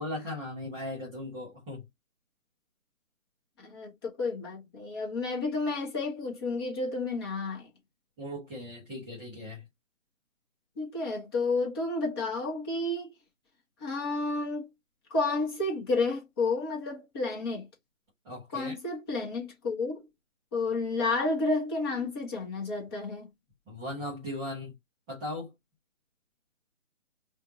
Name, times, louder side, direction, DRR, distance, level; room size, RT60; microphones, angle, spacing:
voice 1, 0.0-1.8 8.2-9.7 18.2-18.8 23.7-24.7 25.1-25.5, left 1 dB, 5° right, 0.8 m, -38 dB
voice 2, 3.6-7.7 10.8-13.1 13.8-14.7 15.1-17.7 18.5-20.1 20.5-23.3, left 3 dB, 20° left, 1.3 m, -31 dB
5.1 x 2.6 x 2.7 m
figure-of-eight pair, 145°, 39 cm